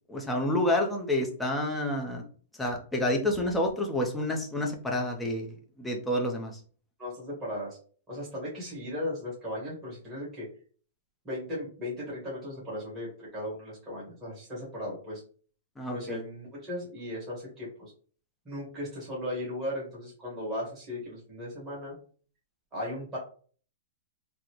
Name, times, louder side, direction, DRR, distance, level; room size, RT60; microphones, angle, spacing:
voice 1, 0.1-2.2 2.6-6.6 15.8-16.2, left 1 dB, 5° left, 1 dB, 0.6 m, -29 dB
voice 2, 7.0-7.8 8.1-10.5 11.2-15.2 15.9-17.9 18.4-21.9 22.7-23.2, left 1 dB, 15° right, -7 dB, 1.7 m, -37 dB
4.0 x 2.1 x 3.0 m, 0.43 s
hypercardioid pair, 145°, 0 cm